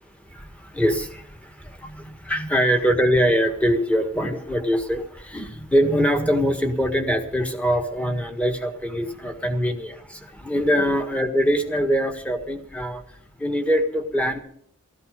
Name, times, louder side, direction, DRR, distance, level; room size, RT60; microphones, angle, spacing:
voice 1, 0.3-13.0 13.4-14.4, equal, 5° left, 5 dB, 1.6 m, -23 dB
15.0 x 14.0 x 5.2 m, 0.63 s
head